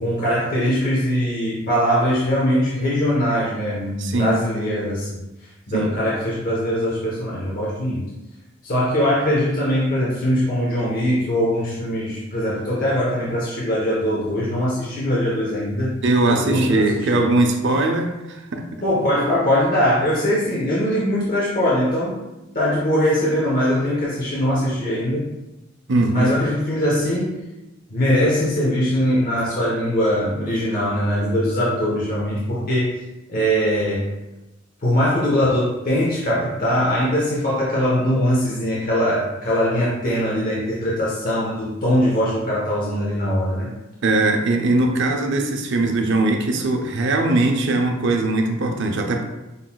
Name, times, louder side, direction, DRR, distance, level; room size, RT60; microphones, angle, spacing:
voice 1, 0.0-5.2 5.7-8.1 8.6-16.0 16.3-17.3 18.8-22.2 22.5-25.3 26.1-27.4 27.9-32.9 33.3-34.2 34.8-43.7, equal, 45° left, -6 dB, 0.9 m, -21 dB
voice 2, 4.0-4.4 5.7-5.9 16.0-18.7 25.9-26.3 44.0-49.2, right 2 dB, 65° right, 3 dB, 0.6 m, -20 dB
5.5 x 3.9 x 2.2 m, 1.0 s
head